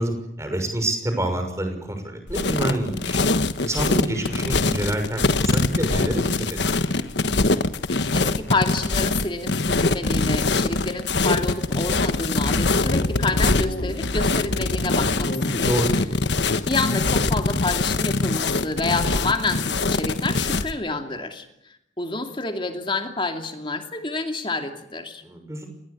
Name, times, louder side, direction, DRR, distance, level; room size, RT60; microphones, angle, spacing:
voice 1, 0.0-3.2 3.6-7.0 15.4-16.0 25.2-25.7, right 1 dB, 15° right, 5 dB, 6.1 m, -27 dB
sound 1, 2.3-20.7, left 3 dB, 70° left, 1.3 m, -23 dB
voice 2, 8.1-15.6 15.9-16.0 16.6-25.2, left 3 dB, 25° left, 5 dB, 2.7 m, -28 dB
sound 2, 11.9-17.6, left 1 dB, 50° left, 1.2 m, -32 dB
28.5 x 20.5 x 8.5 m, 0.80 s
head